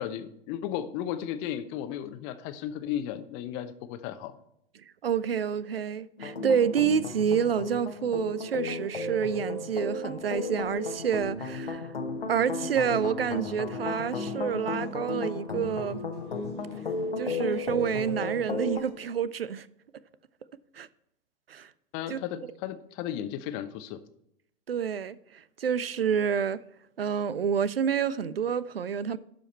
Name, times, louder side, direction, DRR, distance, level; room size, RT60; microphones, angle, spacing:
voice 1, 0.0-4.3 21.9-24.0, left 10 dB, 40° left, 0.9 m, -35 dB
voice 2, 5.0-11.9 12.3-16.0 17.2-19.7 20.7-20.9 21.5-21.7 22.1-22.2 24.7-26.6 27.0-29.2, right 7 dB, 80° right, 0.5 m, -28 dB
sound 1, 6.2-18.8, left 3 dB, 80° left, 1.1 m, -34 dB
sound 2, 9.2-18.9, equal, 65° right, 3.5 m, -53 dB
12.0 x 5.1 x 4.3 m
figure-of-eight pair, 85°, 29 cm